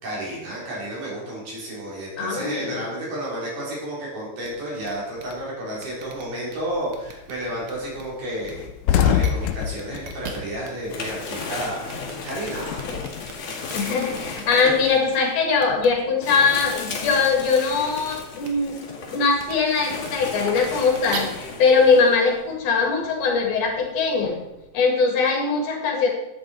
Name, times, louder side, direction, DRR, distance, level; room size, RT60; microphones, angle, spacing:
voice 1, 0.0-8.6 8.9-12.9, right 1 dB, 90° right, -5 dB, 5.8 m, -31 dB
voice 2, 2.2-2.8 13.6-18.8 19.1-24.4 24.7-26.1, left 4 dB, 75° left, 1 dB, 3.5 m, -21 dB
sound 1, 4.4-4.5 4.8-4.9 5.2-5.3 5.8-6.5 6.9-7.3 7.6-8.0 8.4-8.5 8.9-9.3 9.7-10.7 11.0-11.1 11.4-13.3 13.7-14.6 15.6-15.9 16.4-16.6 16.9-17.0 17.9-18.1 18.4-18.5 19.4-19.5 20.0-20.1 20.5-21.2, right 6 dB, 55° right, 1.8 m, -38 dB
sound 2, 6.8-7.1 7.5-7.6 7.9-8.0 8.3-11.3 11.6-13.3, left 9 dB, 90° left, 2.3 m, -24 dB
sound 3, 9.5-10.1 10.5-24.7, left 4 dB, 55° left, 3.3 m, -35 dB
13.0 x 8.7 x 4.6 m, 0.96 s
omnidirectional pair, 3.7 m